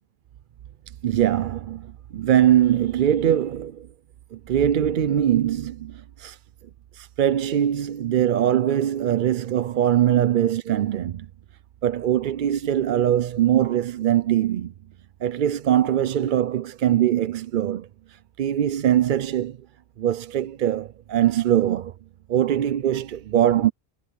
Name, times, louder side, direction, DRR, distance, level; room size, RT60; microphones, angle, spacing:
voice 1, 1.0-3.9 4.3-6.4 6.9-11.3 11.8-14.7 15.2-19.6 20.0-21.9 22.3-23.7, right 11 dB, 60° right, 0.7 m, -22 dB
omnidirectional pair, 1.1 m